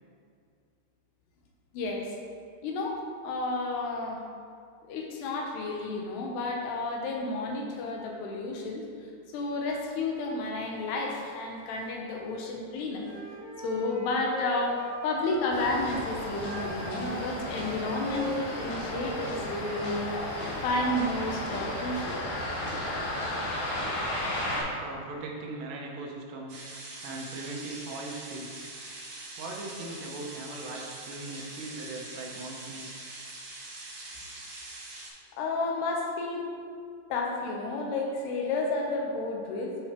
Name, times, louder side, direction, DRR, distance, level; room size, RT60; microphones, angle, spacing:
voice 1, 1.7-2.2 2.6-4.2 4.9-8.9 9.3-13.1 13.6-20.2 20.6-22.2 35.3-36.4 37.1-39.8, left 2 dB, 85° left, 0 dB, 2.8 m, -31 dB
Wind instrument woodwind instrument, 13.0-16.0 16.4-19.8, right 4 dB, 40° left, 1.3 m, -40 dB
sound 1, 15.5-24.6, left 1 dB, 60° left, 2.9 m, -34 dB
voice 2, 24.5-26.7 27.0-28.7 29.4-33.1, right 2 dB, 80° right, 0 dB, 3.0 m, -40 dB
sound 2, 26.5-35.1, right 2 dB, 50° right, 1.9 m, -43 dB
9.7 x 5.7 x 3.0 m, 2.2 s
omnidirectional pair, 4.9 m